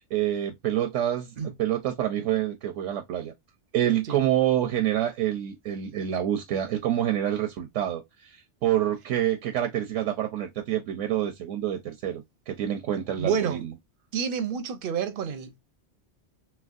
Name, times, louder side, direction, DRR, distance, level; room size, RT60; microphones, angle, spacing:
voice 1, 0.1-1.3 1.6-3.3 3.7-13.7, right 11 dB, 85° right, 1.0 m, -27 dB
voice 2, 13.2-13.6 14.1-15.6, right 7 dB, 60° right, 0.7 m, -29 dB
3.3 x 2.9 x 2.4 m
omnidirectional pair, 1.3 m